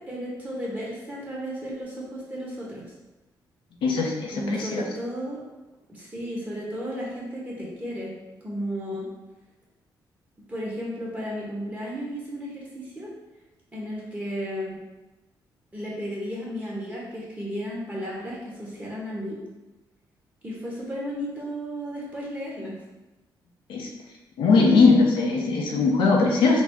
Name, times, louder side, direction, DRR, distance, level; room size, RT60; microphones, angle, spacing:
voice 1, 0.0-2.9 4.3-5.4 5.9-8.1 8.4-9.1 10.5-13.1 13.7-14.8 15.7-19.4 20.4-22.8, equal, 20° right, -5 dB, 1.4 m, -33 dB
voice 2, 3.8-4.8 23.7-23.9 24.4-26.6, left 4 dB, 85° left, -1 dB, 0.6 m, -20 dB
3.8 x 2.1 x 3.5 m, 1.1 s
cardioid pair, 75°, 8 cm